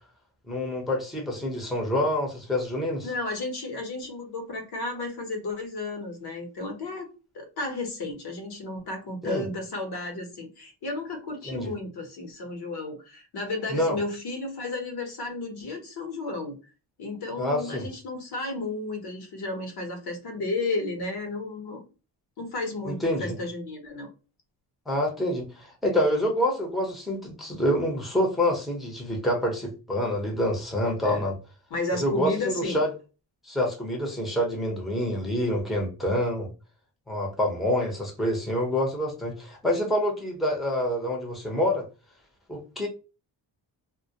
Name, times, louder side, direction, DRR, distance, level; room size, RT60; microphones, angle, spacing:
voice 1, 0.5-3.1 9.2-9.4 11.4-11.7 13.7-14.0 17.4-17.9 22.8-23.4 24.9-31.4 32.0-32.9 33.4-36.5 37.1-41.9 42.5-42.9, left 1 dB, ahead, 0.7 m, -27 dB
voice 2, 3.0-7.1 7.3-16.6 17.0-21.8 22.4-24.1 31.0-31.2 31.7-32.8, left 2 dB, 60° left, 0.9 m, -33 dB
2.2 x 2.1 x 2.7 m
cardioid pair, 100°, 42 cm